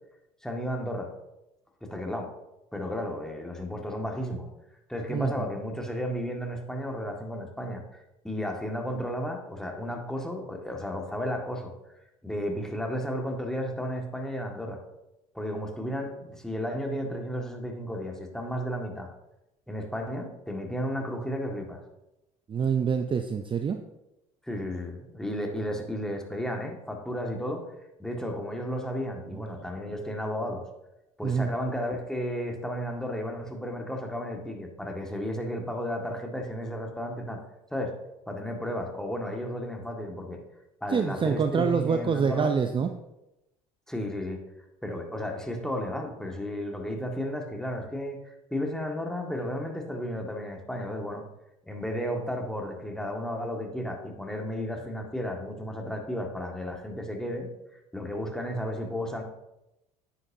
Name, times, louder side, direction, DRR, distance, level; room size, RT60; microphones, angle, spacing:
voice 1, 0.4-1.1 1.8-2.3 2.7-4.5 4.9-11.7 12.2-14.8 15.3-19.1 19.7-21.8 24.5-27.7 28.0-30.6 31.2-37.4 37.7-38.0 38.3-40.4 40.8-42.5 43.9-44.4 44.8-51.2 51.7-57.5 57.9-59.2, equal, 5° left, 2 dB, 1.9 m, -33 dB
voice 2, 22.5-23.8 31.2-31.5 40.9-42.9, right 6 dB, 25° right, 8 dB, 0.6 m, -26 dB
9.9 x 9.7 x 2.8 m, 0.92 s
hypercardioid pair, 65°, 18 cm